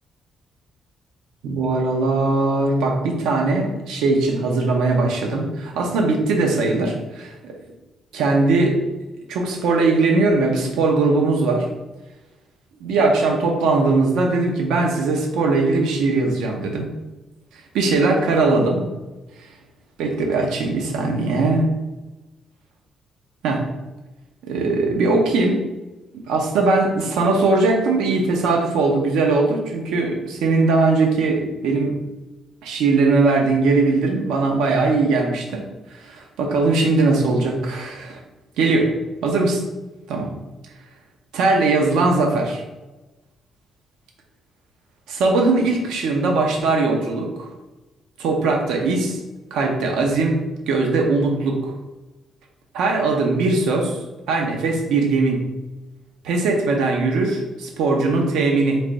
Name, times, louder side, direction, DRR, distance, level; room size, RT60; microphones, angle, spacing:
voice 1, 1.4-7.5 8.1-8.8 9.3-11.7 12.8-16.9 17.5-18.9 19.4-19.5 20.0-21.7 23.4-23.6 24.4-25.6 26.1-31.9 32.6-38.2 38.6-38.9 39.2-39.6 40.1-40.3 41.3-42.6 45.1-47.5 48.2-49.2 49.5-51.7 52.7-54.0 54.3-55.4 56.2-58.8, right 3 dB, 90° right, 1 dB, 0.6 m, -20 dB
3.3 x 2.5 x 4.0 m, 1.1 s
cardioid pair, 90°, 0 cm